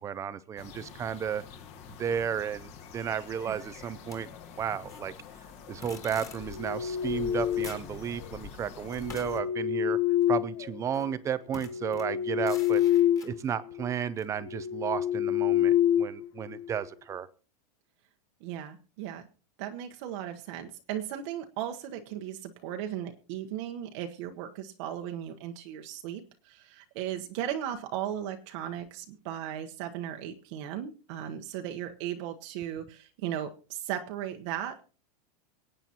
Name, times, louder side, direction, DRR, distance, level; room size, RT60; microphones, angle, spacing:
voice 1, 0.0-1.4 1.9-4.3 4.6-5.1 5.7-10.0 10.3-12.8 13.2-17.3, right 8 dB, 15° right, 15 dB, 0.5 m, -33 dB
sound 1, 0.6-9.4, left 7 dB, 35° left, 1.6 m, -47 dB
sound 2, 4.1-5.1 5.8-6.6 7.3-7.4 7.6-8.0 8.9-10.3 10.9-11.1 11.5-13.4 14.2-14.3, left 5 dB, 15° left, 2.1 m, -48 dB
sound 3, 6.4-7.9 8.9-11.0 11.5-13.4 13.7-13.9 14.4-16.8, left 11 dB, 50° left, 0.7 m, -27 dB
voice 2, 18.4-19.3 19.6-34.8, right 10 dB, 45° right, 4 dB, 1.0 m, -36 dB
24.5 x 8.9 x 2.9 m, 0.37 s
supercardioid pair, 155°, 20 cm